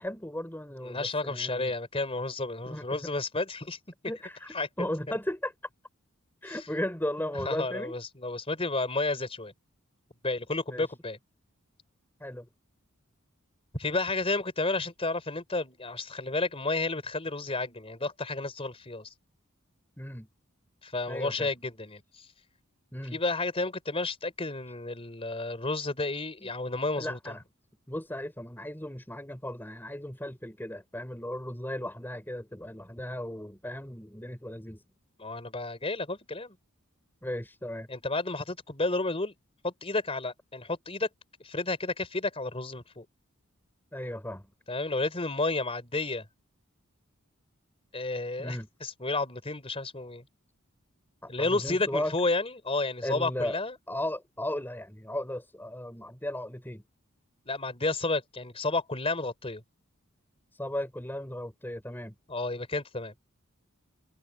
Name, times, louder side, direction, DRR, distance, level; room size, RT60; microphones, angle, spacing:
voice 1, 0.0-1.7 2.7-2.8 4.1-5.5 6.4-8.0 10.7-10.9 12.2-12.5 20.0-20.3 21.1-21.5 22.9-23.2 26.4-26.5 26.8-27.4 27.9-34.8 37.2-37.9 43.9-44.5 48.4-48.7 51.2-52.1 53.0-53.6 53.9-56.8 60.5-62.1, left 1 dB, 10° left, 5.4 m, -36 dB
voice 2, 0.8-3.8 4.5-5.2 6.5-6.6 7.4-9.5 10.2-11.2 13.7-19.1 20.8-22.2 23.1-27.3 35.2-36.6 37.9-39.3 39.6-41.1 41.4-43.1 44.7-46.3 47.9-50.2 51.3-53.7 57.5-59.6 62.3-63.1, left 2 dB, 25° left, 4.1 m, -31 dB
head